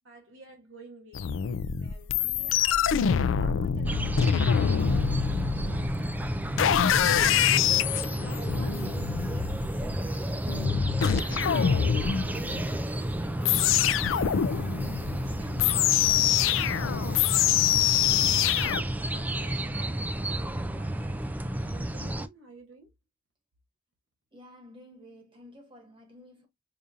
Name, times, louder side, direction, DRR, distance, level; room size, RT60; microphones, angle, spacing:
voice 1, 0.0-3.0 3.4-6.2 7.0-10.4 10.9-21.2 21.5-22.9, right 2 dB, 70° right, 1.1 m, -51 dB
sound 1, 1.1-18.8, left 9 dB, 70° left, 0.3 m, -25 dB
sound 2, 3.8-22.3, right 1 dB, 10° right, 0.3 m, -32 dB
voice 2, 24.3-26.5, left 1 dB, 25° right, 1.6 m, -51 dB
5.0 x 2.5 x 2.5 m
head